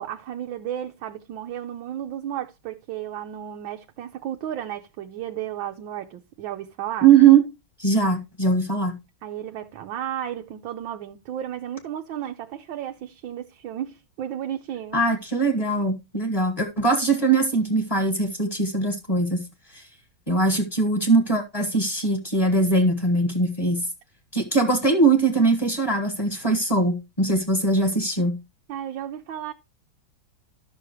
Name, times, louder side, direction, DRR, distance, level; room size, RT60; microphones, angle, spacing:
voice 1, 0.0-7.1 9.2-15.0 28.7-29.5, right 10 dB, 75° right, 1.5 m, -33 dB
voice 2, 7.0-7.5 7.8-8.9 14.9-19.4 19.7-19.8 20.3-23.8 24.3-28.4, right 4 dB, 20° left, 1.6 m, -21 dB
13.5 x 6.2 x 3.0 m
omnidirectional pair, 2.2 m